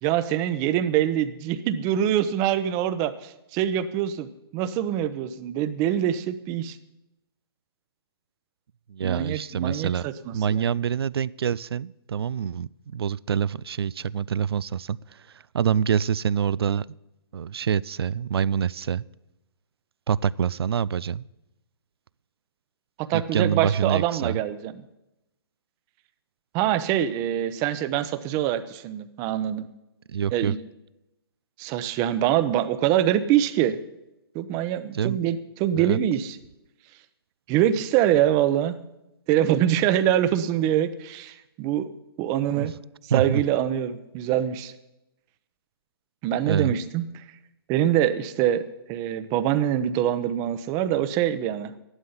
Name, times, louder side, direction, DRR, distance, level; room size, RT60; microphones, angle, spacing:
voice 1, 0.0-6.8 9.0-10.6 23.0-24.7 26.5-29.7 30.3-30.6 31.6-33.8 34.3-36.4 37.5-38.8 39.3-41.9 42.2-42.7 43.1-44.7 46.2-47.0 47.7-48.6 48.9-51.7, right 11 dB, 25° right, 13 dB, 0.8 m, -24 dB
voice 2, 8.9-10.1 10.3-17.0 17.3-19.0 20.1-21.3 23.1-24.4 30.1-30.5 34.9-35.2 35.8-36.0 42.5-42.7 43.1-43.4 46.5-46.7, right 8 dB, 75° right, 22 dB, 0.4 m, -26 dB
13.5 x 11.5 x 5.7 m, 0.91 s
hypercardioid pair, 140°, 13 cm